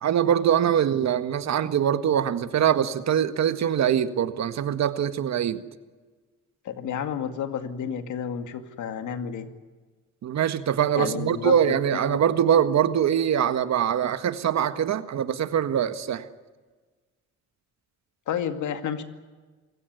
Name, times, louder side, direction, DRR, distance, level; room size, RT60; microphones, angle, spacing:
voice 1, 0.0-5.6 10.2-16.2, right 9 dB, 65° right, 11 dB, 1.7 m, -23 dB
voice 2, 6.7-9.5 11.0-11.6 12.0-12.2 18.3-19.0, left 8 dB, 75° left, 8 dB, 2.2 m, -30 dB
27.5 x 16.0 x 9.5 m, 1.4 s
cardioid pair, 90°, 30 cm